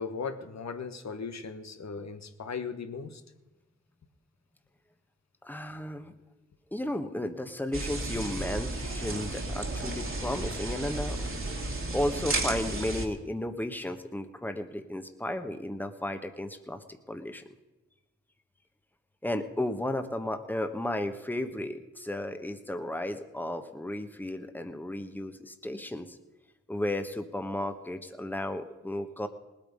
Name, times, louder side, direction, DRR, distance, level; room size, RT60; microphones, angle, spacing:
voice 1, 0.0-3.2, left 5 dB, 65° left, 9 dB, 1.2 m, -37 dB
voice 2, 5.4-6.1 6.7-11.3 11.9-17.4 19.2-26.2 26.7-29.3, left 1 dB, 5° left, 8 dB, 1.3 m, -34 dB
sound 1, 7.7-13.1, right 2 dB, 45° right, 2.2 m, -33 dB
19.0 x 8.8 x 5.3 m, 1.0 s
cardioid pair, 50°, 30 cm